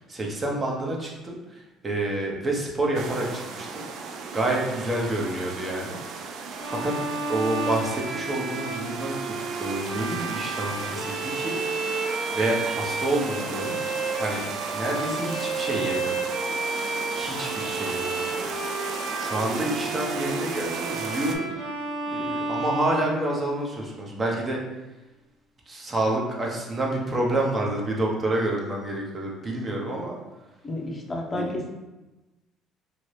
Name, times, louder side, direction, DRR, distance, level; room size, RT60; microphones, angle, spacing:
voice 1, 0.0-3.8 4.3-6.0 6.7-6.9 7.3-11.6 12.3-13.8 14.2-14.4 14.7-16.2 17.1-18.4 18.8-21.5 22.1-24.6 25.7-30.2 31.3-31.5, right 1 dB, 30° right, -2 dB, 0.8 m, -28 dB
sound 1, 2.9-21.3, right 4 dB, 65° right, 0.3 m, -36 dB
Bowed string instrument, 6.6-23.8, right 3 dB, 85° right, 0.7 m, -31 dB
voice 2, 30.6-31.7, left 1 dB, 30° left, 1 dB, 0.6 m, -31 dB
2.7 x 2.6 x 3.2 m, 1.1 s
supercardioid pair, 85°, 0 cm